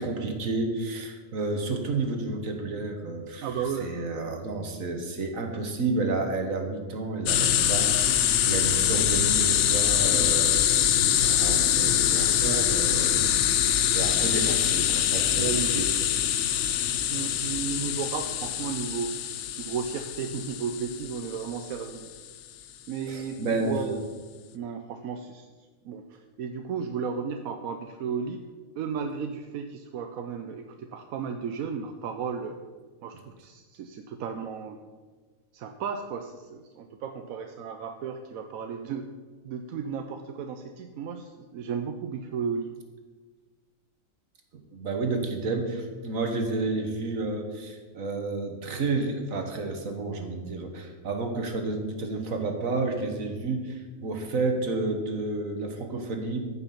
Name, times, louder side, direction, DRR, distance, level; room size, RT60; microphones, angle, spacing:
voice 1, 0.0-3.5 3.8-15.9 23.1-24.0 44.5-56.4, right 3 dB, 75° right, 5 dB, 1.8 m, -31 dB
voice 2, 3.4-4.4 12.4-13.4 15.3-15.7 17.1-19.1 19.6-22.1 22.9-24.0 24.5-25.5 25.8-28.4 28.8-32.6 33.0-34.9 35.5-39.1 39.4-42.7, right 6 dB, 90° right, 6 dB, 1.1 m, -34 dB
sound 1, 7.3-21.8, left 10 dB, 65° left, 0.9 m, -24 dB
14.5 x 6.1 x 5.7 m, 1.4 s
omnidirectional pair, 1.4 m